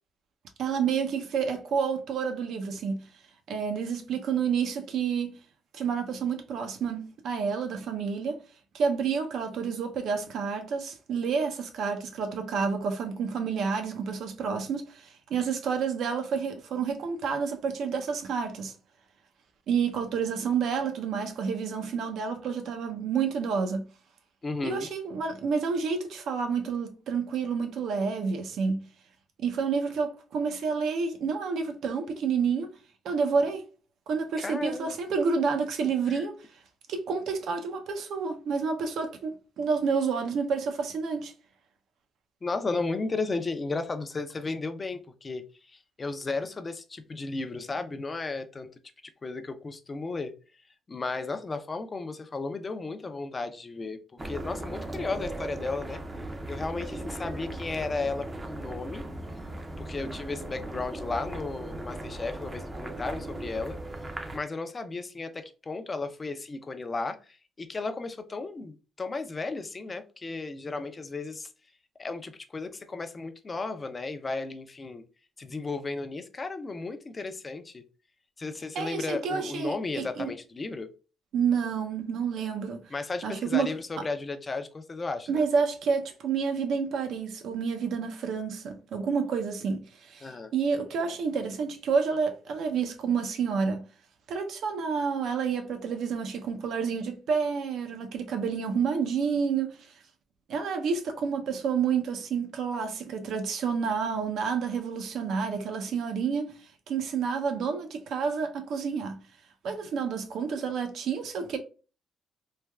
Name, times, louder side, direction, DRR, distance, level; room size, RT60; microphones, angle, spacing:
voice 1, 0.6-3.0 3.5-5.4 5.7-8.4 8.7-18.7 19.7-23.9 24.6-28.8 29.4-32.7 33.0-33.6 34.1-36.4 36.9-41.3 78.7-80.3 81.3-82.8 83.2-83.7 85.3-93.8 94.3-99.7 100.5-106.5 106.9-109.2 109.6-111.6, right 6 dB, 75° right, 0.5 m, -29 dB
voice 2, 24.4-24.9 34.4-35.0 36.1-36.2 42.4-48.7 49.2-50.3 50.9-56.0 56.5-59.0 59.8-63.8 64.3-71.5 72.0-75.0 75.4-77.8 78.4-80.9 82.9-85.4 90.2-90.5, left 3 dB, 30° left, 0.4 m, -34 dB
sound 1, 54.2-64.4, right 1 dB, 25° right, 0.5 m, -38 dB
3.2 x 2.2 x 2.2 m
cardioid pair, 90°, 0 cm